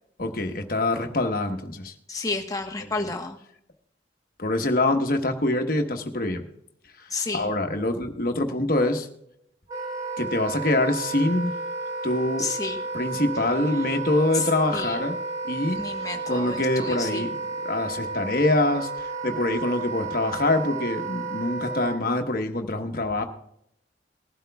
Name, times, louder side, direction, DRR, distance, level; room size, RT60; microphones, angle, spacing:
voice 1, 0.2-1.9 4.4-6.5 7.3-9.1 10.2-11.5 12.0-12.4 12.9-15.1 15.5-15.8 16.3-17.3 17.6-23.2, left 2 dB, 50° left, 5 dB, 1.2 m, -25 dB
voice 2, 2.1-3.4 7.1-7.5 12.4-12.8 14.3-15.0 15.8-17.3, left 3 dB, 20° left, 2 dB, 1.1 m, -31 dB
Wind instrument woodwind instrument, 9.7-22.0, right 3 dB, 20° right, 2.4 m, -32 dB
20.0 x 12.0 x 2.3 m, 0.75 s
head